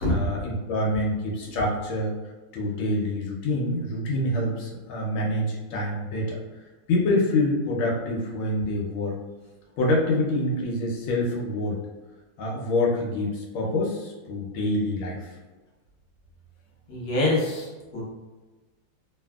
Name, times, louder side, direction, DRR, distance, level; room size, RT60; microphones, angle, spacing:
voice 1, 0.1-2.1 2.5-6.4 6.9-9.2 9.8-11.8 12.4-15.4, left 1 dB, 80° left, -2 dB, 1.4 m, -26 dB
voice 2, 16.9-18.0, left 2 dB, 55° left, -5 dB, 1.0 m, -25 dB
3.3 x 2.5 x 2.3 m, 1.2 s
omnidirectional pair, 2.2 m